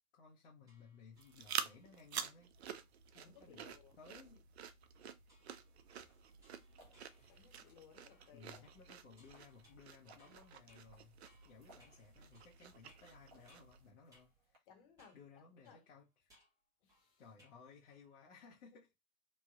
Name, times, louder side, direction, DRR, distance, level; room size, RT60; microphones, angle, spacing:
voice 1, 0.1-2.9 3.1-3.6 4.0-4.4 4.9-5.3 7.1-7.5 8.3-11.2 11.4-14.7 15.1-16.1 17.2-18.9, left 5 dB, 55° left, 1.1 m, -60 dB
sound 1, 0.6-2.2 5.3-13.8 14.1-14.3 15.0-15.3 15.6-17.6 17.9-18.2, left 1 dB, 5° right, 1.0 m, -72 dB
sound 2, 1.1-13.9, right 8 dB, 50° right, 0.4 m, -49 dB
voice 2, 3.2-4.0 7.3-8.7 14.7-15.8 16.8-17.2, left 7 dB, 35° left, 1.3 m, -63 dB
sound 3, 5.8-14.6, right 1 dB, 25° right, 1.4 m, -69 dB
3.1 x 2.6 x 2.4 m
hypercardioid pair, 125°, 44 cm